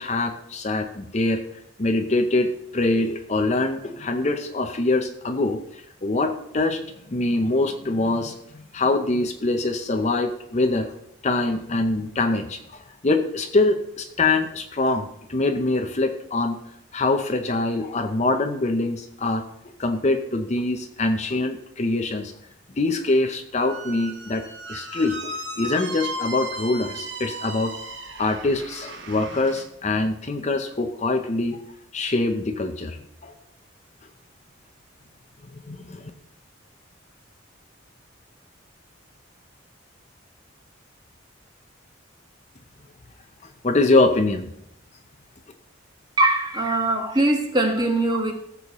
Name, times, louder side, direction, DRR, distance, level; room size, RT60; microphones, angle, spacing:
voice 1, 0.0-1.4 1.8-10.9 11.2-16.6 16.9-19.5 19.8-22.3 22.8-24.4 24.7-27.7 28.2-31.6 31.9-33.3 35.5-36.1 43.6-44.5, left 2 dB, 35° left, 6 dB, 0.6 m, -24 dB
Squeak, 23.6-29.7, right 1 dB, 60° right, 1.4 m, -36 dB
voice 2, 46.2-48.3, right 2 dB, 20° right, 2 dB, 1.4 m, -21 dB
16.0 x 7.0 x 3.0 m, 0.77 s
head